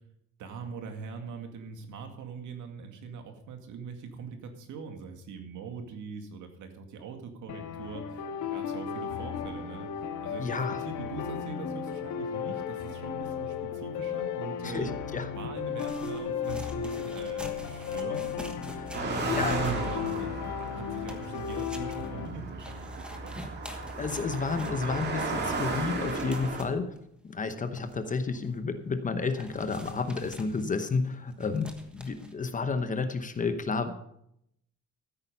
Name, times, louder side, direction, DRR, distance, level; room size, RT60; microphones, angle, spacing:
voice 1, 0.4-9.9 10.2-14.9 15.3-18.3 18.9-23.4, right 5 dB, 70° right, 5 dB, 2.2 m, -42 dB
sound 1, 7.5-22.3, left 8 dB, 70° left, 1.9 m, -35 dB
voice 2, 10.4-10.8 14.6-15.3 18.7-18.9 19.3-19.6 24.0-26.9 27.2-34.0, left 4 dB, 25° left, 9 dB, 0.9 m, -31 dB
sound 2, 15.7-27.0 27.4-27.5 27.8-28.6 28.8-28.9 29.3-32.3, equal, 5° right, 1.3 m, -47 dB
Car passing by, 18.9-26.6, right 3 dB, 35° right, 2.3 m, -34 dB
14.0 x 8.9 x 5.5 m, 0.75 s
cardioid pair, 165°, 31 cm